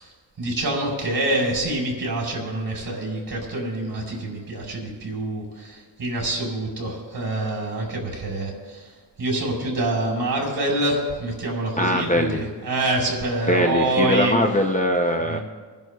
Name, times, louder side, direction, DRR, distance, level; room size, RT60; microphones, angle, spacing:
voice 1, 0.4-8.9 9.2-14.3 15.3-15.4, right 1 dB, 60° right, -2 dB, 4.4 m, -26 dB
voice 2, 11.8-12.4 13.5-15.4, left 1 dB, 20° left, 3 dB, 0.6 m, -21 dB
27.0 x 11.0 x 2.3 m, 1.5 s
wide cardioid pair, 175°, 41 cm